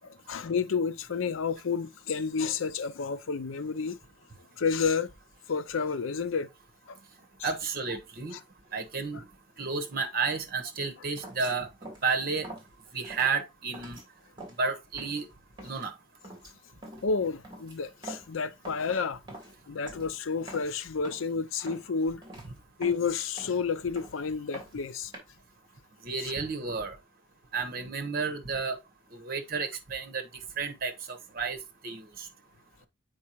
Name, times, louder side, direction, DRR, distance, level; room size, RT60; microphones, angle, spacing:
voice 1, 0.3-4.0 4.6-5.1 5.5-6.5 6.9-7.0 8.3-8.4 17.0-19.2 19.7-22.2 22.8-25.1 26.2-26.3, left 5 dB, 85° left, 0.5 m, -30 dB
voice 2, 7.4-8.3 8.7-9.3 9.6-11.7 12.0-12.5 12.9-14.0 14.6-15.3 15.6-15.9 26.0-27.0 27.5-28.8 29.1-30.2 30.6-31.6 31.8-32.3, right 4 dB, 50° right, 1.2 m, -31 dB
sound 1, 11.2-11.5 11.8-12.1 12.4-12.7 13.0-13.3 13.7-14.0 14.4-14.6 15.0-15.3 15.6-15.9 16.2-16.5 16.8-17.1 17.4-18.4 18.6-19.0 19.3-19.6 19.9-20.1 20.4-20.8 21.0-21.3 21.7-21.9 22.2-22.5 22.8-23.7 24.0-24.2 24.5-25.2, right 1 dB, 25° right, 3.1 m, -45 dB
8.5 x 4.7 x 3.0 m
head